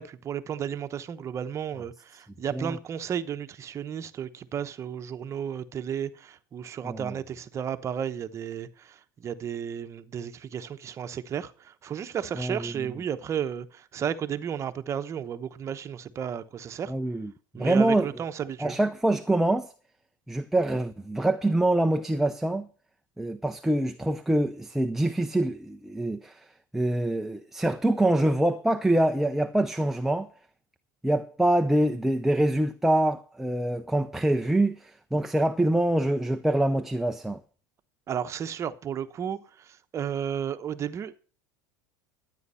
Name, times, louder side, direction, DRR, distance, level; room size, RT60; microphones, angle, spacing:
voice 1, 0.0-16.9 17.5-18.8 38.1-41.1, right 8 dB, 30° right, 1.0 m, -33 dB
voice 2, 6.8-7.1 12.4-12.9 16.9-17.3 17.6-18.1 18.6-19.7 20.3-22.7 23.2-26.5 26.7-30.3 31.0-37.4, right 1 dB, 5° right, 0.6 m, -25 dB
12.5 x 9.3 x 5.6 m
supercardioid pair, 130°, 10 cm